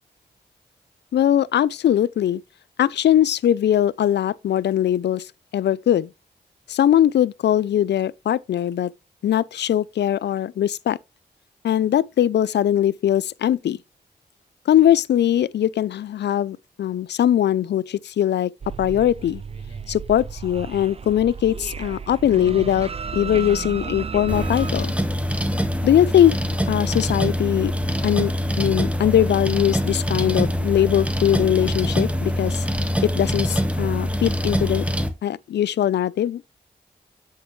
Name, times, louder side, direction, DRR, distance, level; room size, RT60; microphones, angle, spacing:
voice 1, 1.1-2.4 2.8-5.3 5.5-6.1 6.7-8.9 9.2-11.0 11.6-13.8 14.7-18.5 18.8-19.4 19.9-24.9 25.8-26.3 26.7-27.7 28.0-28.3 28.6-32.6 33.2-34.8 35.2-36.4, left 11 dB, 70° left, 0.4 m, -20 dB
sound 1, 18.6-24.7, right 5 dB, 35° right, 0.5 m, -33 dB
sound 2, 24.3-35.1, equal, 5° right, 1.6 m, -24 dB
7.6 x 6.6 x 3.1 m
cardioid pair, 50°, 18 cm